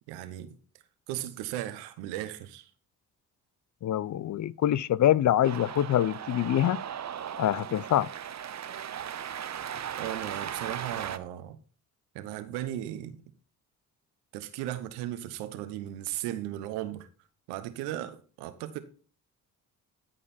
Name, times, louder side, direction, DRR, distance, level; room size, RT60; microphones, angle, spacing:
voice 1, 0.1-0.6 1.1-2.7 10.0-11.6 12.1-13.2 14.3-17.1 17.5-18.8, right 13 dB, 90° right, 1.0 m, -36 dB
voice 2, 3.8-6.8 7.4-8.1, left 12 dB, 50° left, 0.5 m, -25 dB
Cheering, 5.4-11.2, right 9 dB, 45° right, 0.8 m, -37 dB
13.0 x 5.1 x 4.3 m
supercardioid pair, 55°, 39 cm